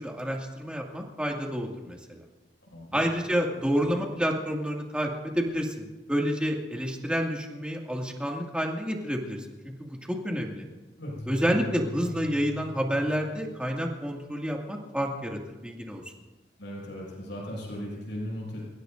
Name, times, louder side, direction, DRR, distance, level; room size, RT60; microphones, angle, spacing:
voice 1, 0.0-2.2 2.9-9.5 9.8-10.6 11.3-16.0, equal, 5° right, -1 dB, 2.2 m, -29 dB
voice 2, 2.7-3.0 11.0-11.3 16.6-18.7, equal, 90° left, -4 dB, 6.4 m, -37 dB
Bass Sin Swing Umbrella end - one shot, 11.2-13.7, equal, 55° left, 5.8 m, -41 dB
29.5 x 16.5 x 2.6 m, 1.1 s
head